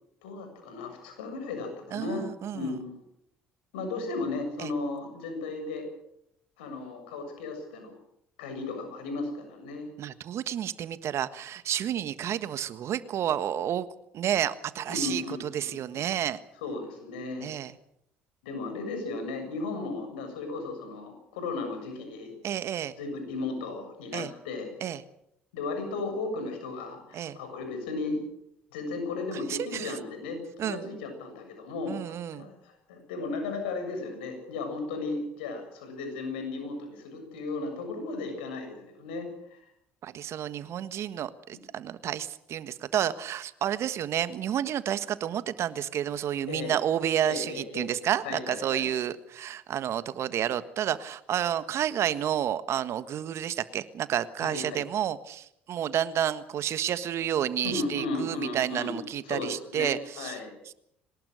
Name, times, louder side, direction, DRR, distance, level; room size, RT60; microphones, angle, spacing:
voice 1, 0.2-2.3 2.5-3.0 3.7-5.9 6.6-7.9 8.4-9.9 14.9-16.0 16.6-17.5 18.4-22.4 23.0-24.7 25.5-28.2 28.7-39.6 41.5-41.6 46.5-46.7 47.2-47.9 48.2-48.9 54.4-54.8 57.6-59.0 59.3-60.5, left 3 dB, 85° left, 6 dB, 7.1 m, -35 dB
voice 2, 1.9-2.8 4.6-4.7 10.0-13.9 14.1-16.4 17.4-17.7 22.4-22.9 24.1-24.3 24.8-25.0 27.1-27.4 29.5-29.9 30.6-30.9 31.9-32.5 40.0-60.4 60.7-60.8, right 10 dB, 55° right, 14 dB, 1.5 m, -30 dB
24.0 x 19.5 x 6.5 m, 0.74 s
hypercardioid pair, 60°, 5 cm